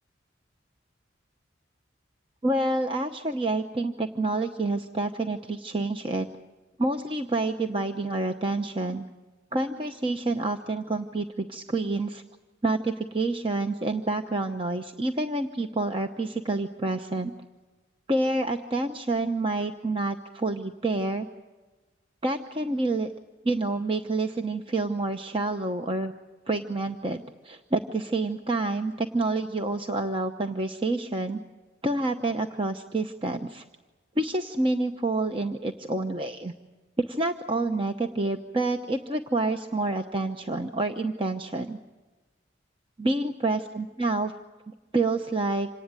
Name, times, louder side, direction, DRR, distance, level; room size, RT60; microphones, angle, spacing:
voice 1, 2.4-6.3 6.8-9.0 9.5-12.2 12.6-17.3 18.1-21.3 22.2-23.1 23.4-26.1 26.5-31.4 31.8-33.6 34.2-36.5 37.1-41.8 43.0-44.3 44.9-45.7, right 2 dB, 30° right, 5 dB, 0.9 m, -28 dB
27.0 x 19.0 x 9.0 m, 1.2 s
head